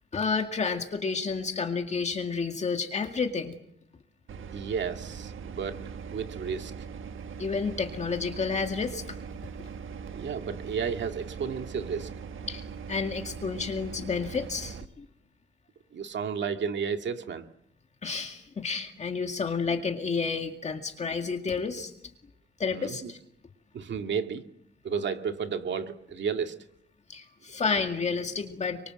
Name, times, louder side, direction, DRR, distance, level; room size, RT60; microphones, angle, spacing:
voice 1, 0.1-3.5 7.4-9.2 12.5-15.1 18.0-21.9 22.6-23.2 27.1-28.9, left 5 dB, 35° left, 4 dB, 2.1 m, -30 dB
sound 1, 4.3-14.9, right 6 dB, 80° right, 1.5 m, -41 dB
voice 2, 4.5-5.8 6.1-6.7 10.1-12.1 15.9-17.5 22.7-23.1 23.7-24.4 24.8-26.5, right 6 dB, 65° right, 6 dB, 2.2 m, -32 dB
29.0 x 24.5 x 7.7 m, 0.74 s
wide cardioid pair, 180°, 20 cm